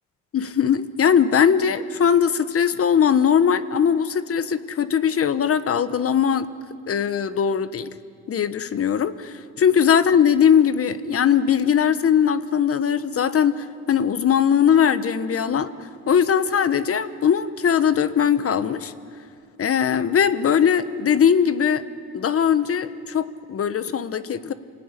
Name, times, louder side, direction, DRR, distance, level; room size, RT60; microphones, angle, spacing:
voice 1, 0.3-6.5 6.9-7.9 8.3-18.9 19.6-21.8 22.1-24.5, left 8 dB, 50° left, 13 dB, 1.2 m, -20 dB
26.5 x 17.0 x 9.9 m, 2.3 s
cardioid pair, 90°, 30 cm